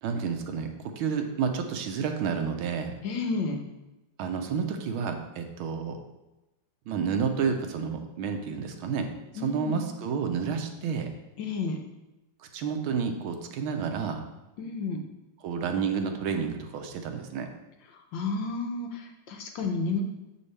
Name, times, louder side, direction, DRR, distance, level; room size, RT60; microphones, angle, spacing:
voice 1, 0.0-2.9 4.2-6.0 6.9-11.1 12.4-14.2 15.4-17.5, right 6 dB, 80° right, 5 dB, 1.6 m, -30 dB
voice 2, 3.0-3.6 9.4-9.8 11.4-11.8 14.6-15.0 18.1-20.0, left 4 dB, 70° left, 3 dB, 1.3 m, -31 dB
7.4 x 5.4 x 3.3 m, 1.0 s
omnidirectional pair, 2.3 m